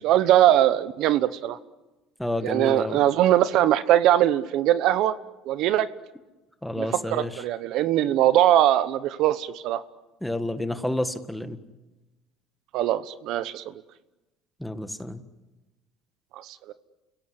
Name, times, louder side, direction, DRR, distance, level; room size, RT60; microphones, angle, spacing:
voice 1, 0.0-1.6 2.4-5.2 5.5-5.9 6.8-9.8 12.7-13.6 16.4-16.6, right 12 dB, 65° right, 14 dB, 1.0 m, -21 dB
voice 2, 2.2-3.0 6.6-7.4 10.2-11.6 14.6-15.2, left 1 dB, 5° left, 9 dB, 1.7 m, -30 dB
29.0 x 17.0 x 9.9 m, 1.1 s
supercardioid pair, 105°, 0 cm